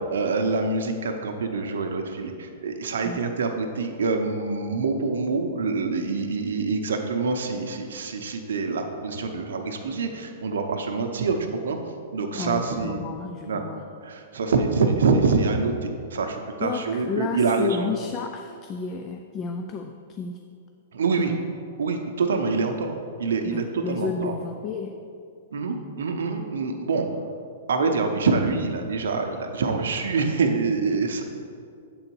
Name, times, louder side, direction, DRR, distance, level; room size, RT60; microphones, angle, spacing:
voice 1, 0.1-11.4 11.6-11.8 12.1-13.0 13.5-13.6 14.0-17.9 20.9-21.3 21.8-24.3 25.5-27.1 27.7-31.2, right 4 dB, 80° right, 4 dB, 0.6 m, -25 dB
voice 2, 12.3-13.8 16.6-20.4 21.2-21.4 23.4-25.0, left 5 dB, 30° left, 4 dB, 0.3 m, -32 dB
7.7 x 3.9 x 4.6 m, 2.4 s
hypercardioid pair, 135°, 0 cm